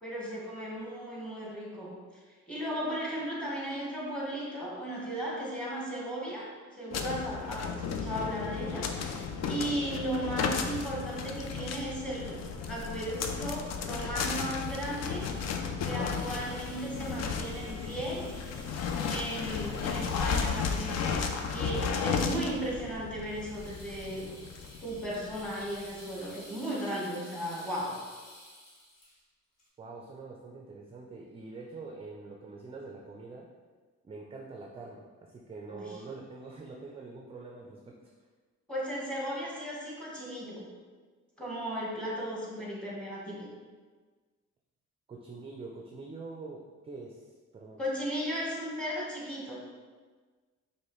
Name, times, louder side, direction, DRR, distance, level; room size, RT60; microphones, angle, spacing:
voice 1, 0.0-2.0 2.5-12.4 12.7-15.3 15.8-18.3 19.1-24.3 24.8-28.0 35.7-36.0 38.7-40.6 41.4-43.5 47.8-49.6, right 1 dB, 5° left, -4 dB, 1.2 m, -36 dB
sound 1, 6.9-25.7, left 6 dB, 60° left, 0.4 m, -34 dB
sound 2, 14.6-29.2 29.6-29.7, left 1 dB, 80° left, 1.5 m, -53 dB
voice 2, 29.8-33.5 34.0-38.0 45.1-47.8, right 3 dB, 20° right, -1 dB, 0.4 m, -45 dB
4.7 x 2.6 x 3.0 m, 1.4 s
cardioid pair, 90°, 30 cm